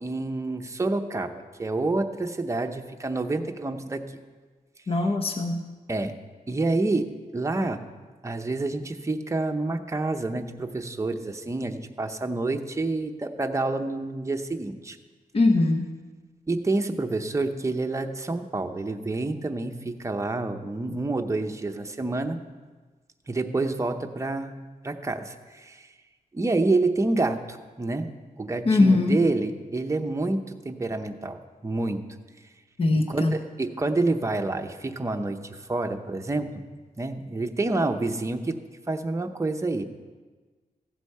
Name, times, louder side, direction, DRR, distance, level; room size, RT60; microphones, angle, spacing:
voice 1, 0.0-4.2 5.9-6.2 6.5-7.9 8.2-15.0 16.5-22.4 23.3-25.9 26.3-28.1 28.4-32.1 33.1-36.6 37.0-38.6 38.9-39.8, right 2 dB, 20° right, 5 dB, 0.7 m, -28 dB
voice 2, 4.9-5.6 15.3-15.9 28.7-29.2 32.8-33.3, left 2 dB, 40° left, 5 dB, 0.8 m, -21 dB
15.0 x 8.2 x 5.5 m, 1.3 s
wide cardioid pair, 135°, 15 cm